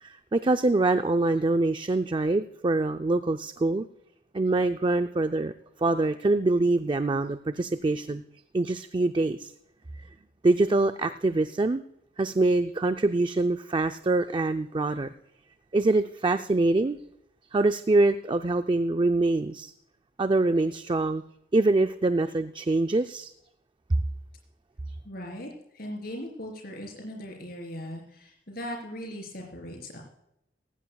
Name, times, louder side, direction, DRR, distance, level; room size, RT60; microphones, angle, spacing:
voice 1, 0.0-3.9 4.3-5.5 5.8-8.2 8.5-9.5 10.4-11.8 12.2-15.1 15.7-17.0 17.5-19.7 20.2-21.2 21.5-23.3, right 2 dB, 25° right, 8 dB, 0.4 m, -24 dB
voice 2, 25.1-25.5 25.7-30.0, equal, 55° left, 1 dB, 3.8 m, -39 dB
17.5 x 15.5 x 2.3 m, 0.81 s
head